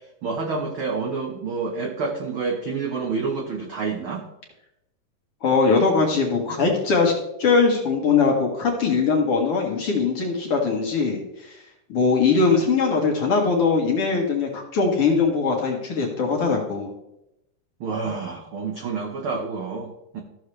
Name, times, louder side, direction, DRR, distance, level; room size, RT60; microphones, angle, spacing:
voice 1, 0.2-4.2 17.8-20.2, right 4 dB, 75° right, 1 dB, 1.2 m, -28 dB
voice 2, 5.4-7.1 7.4-11.6 11.9-16.9, left 4 dB, 55° left, 0 dB, 1.9 m, -21 dB
14.5 x 6.5 x 3.2 m, 0.86 s
omnidirectional pair, 3.8 m